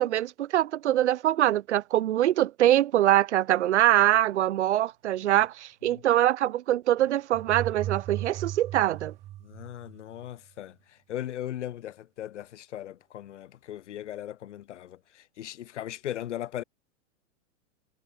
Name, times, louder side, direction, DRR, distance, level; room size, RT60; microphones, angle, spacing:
voice 1, 0.0-9.1, right 13 dB, 65° right, 2.1 m, -23 dB
sound 1, 7.3-10.2, right 14 dB, 15° right, 2.0 m, -36 dB
voice 2, 9.4-16.6, left 12 dB, 65° left, 4.2 m, -38 dB
supercardioid pair, 175°, 37 cm